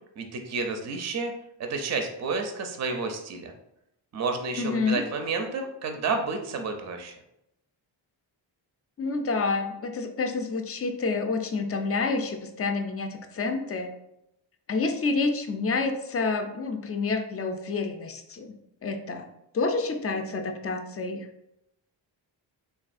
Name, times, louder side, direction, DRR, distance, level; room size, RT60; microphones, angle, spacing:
voice 1, 0.2-1.3 1.6-3.5 4.1-7.1, right 4 dB, 35° right, 4 dB, 0.5 m, -30 dB
voice 2, 4.6-5.0 9.0-13.9 14.7-18.5 18.8-19.3 19.5-21.3, left 4 dB, 30° left, 6 dB, 0.4 m, -28 dB
3.1 x 2.3 x 2.5 m, 0.83 s
cardioid pair, 60°, 49 cm